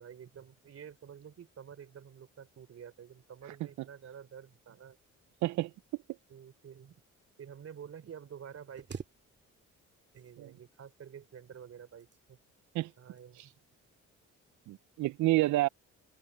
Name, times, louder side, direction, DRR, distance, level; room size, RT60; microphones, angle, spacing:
voice 1, 0.0-5.0 6.3-7.0 7.4-8.9 10.1-12.4 13.0-13.5, right 8 dB, 55° right, 3.5 m, -49 dB
sound 1, 8.7-9.8 10.1-10.8 11.7-12.5 13.2-13.5 14.0-14.2, right 6 dB, 35° right, 2.1 m, -48 dB
voice 2, 14.7-15.7, right 17 dB, 70° right, 0.5 m, -29 dB
cardioid pair, 90°, 30 cm